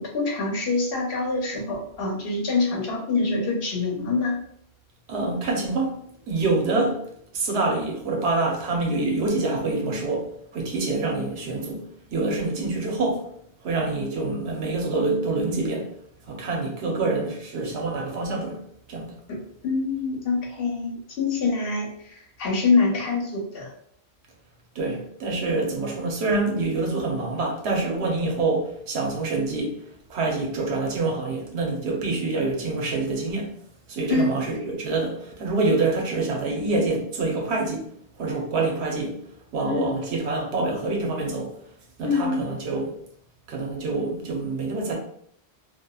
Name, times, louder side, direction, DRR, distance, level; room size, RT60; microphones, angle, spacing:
voice 1, 0.0-4.4 19.3-19.4 19.6-23.7 34.1-34.3 39.7-40.0 42.0-42.4, left 4 dB, 65° left, 0.9 m, -25 dB
voice 2, 5.1-6.0 6.3-7.0 7.3-11.8 12.1-13.2 13.6-15.9 16.3-18.6 18.9-19.1 24.7-29.8 30.1-33.5 33.9-37.9 38.2-39.2 39.5-41.5 42.0-42.9 43.5-44.9, right 3 dB, 90° right, 1.0 m, -26 dB
2.8 x 2.3 x 2.2 m
omnidirectional pair, 1.1 m